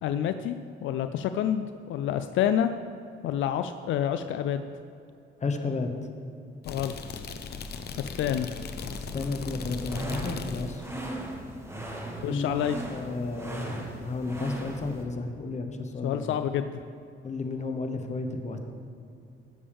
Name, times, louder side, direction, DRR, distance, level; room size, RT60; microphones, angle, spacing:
voice 1, 0.0-0.5 0.8-2.7 3.2-4.7 6.7-6.9 8.0-8.5 12.2-12.8 16.0-16.8, left 10 dB, 80° left, 9 dB, 0.4 m, -28 dB
voice 2, 5.4-5.9 9.1-10.9 12.3-12.5 12.9-16.2 17.2-18.6, left 3 dB, 35° left, 5 dB, 1.1 m, -32 dB
sound 1, 6.6-10.9, left 5 dB, 55° left, 0.8 m, -38 dB
sound 2, 9.6-15.0, right 1 dB, 15° right, 1.7 m, -38 dB
15.5 x 7.0 x 3.5 m, 2.6 s
cardioid pair, 90°, 20 cm